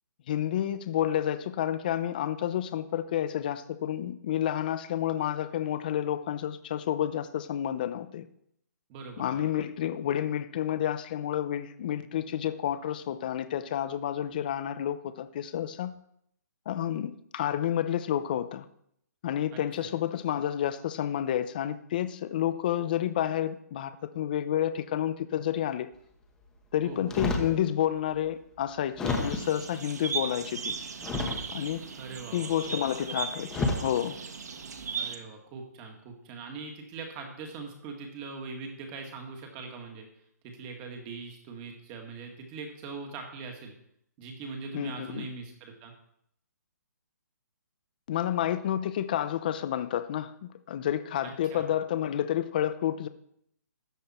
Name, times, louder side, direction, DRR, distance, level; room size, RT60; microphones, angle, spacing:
voice 1, 0.3-8.3 9.2-16.0 16.7-18.7 19.2-25.9 26.7-30.8 31.5-31.8 32.3-34.2 44.7-45.3 48.1-53.1, left 11 dB, 30° left, 0.6 m, -30 dB
voice 2, 8.9-9.6 19.5-19.9 26.8-27.2 32.0-32.7 35.0-40.1 40.4-43.7 44.2-45.9 51.2-51.6, right 4 dB, 20° right, 1.9 m, -42 dB
sound 1, 27.1-27.6 28.2-28.3 29.0-29.6 31.0-31.7 32.9-33.0 33.5-33.9 34.6-34.9, left 2 dB, 5° left, 1.1 m, -30 dB
sound 2, 29.1-35.2, right 6 dB, 65° right, 1.6 m, -37 dB
13.5 x 9.6 x 4.4 m
hypercardioid pair, 170°, 10 cm